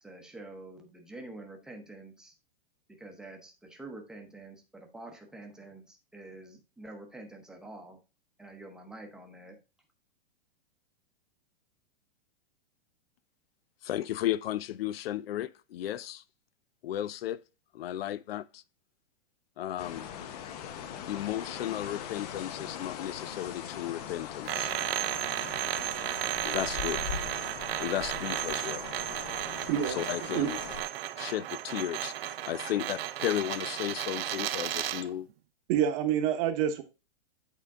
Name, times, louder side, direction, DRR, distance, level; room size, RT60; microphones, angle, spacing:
voice 1, 0.0-2.3 3.0-8.0 8.4-9.6, right 2 dB, ahead, 0.8 m, -47 dB
voice 2, 13.8-16.2 16.8-17.4 17.7-18.6 19.6-20.0 21.1-24.7 26.4-27.1 27.8-28.9 29.9-30.6 31.1-35.3, left 12 dB, 80° left, 0.5 m, -34 dB
sound 1, 19.8-30.8, left 8 dB, 40° left, 0.8 m, -41 dB
sound 2, 24.4-35.1, right 12 dB, 80° right, 0.6 m, -34 dB
voice 3, 29.7-30.0 30.3-30.5 35.7-36.8, right 9 dB, 35° right, 0.9 m, -27 dB
8.4 x 3.7 x 3.6 m
supercardioid pair, 155°, 29 cm